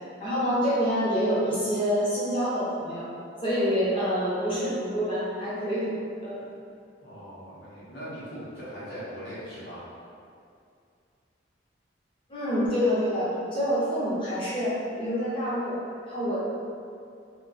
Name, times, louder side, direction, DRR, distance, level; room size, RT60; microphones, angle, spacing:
voice 1, 0.2-3.1 3.4-5.9 6.2-6.4 12.3-15.7 16.1-16.4, equal, 30° left, -10 dB, 0.7 m, -27 dB
voice 2, 7.0-9.8, equal, 60° left, -10 dB, 0.8 m, -40 dB
2.2 x 2.2 x 2.5 m, 2.4 s
head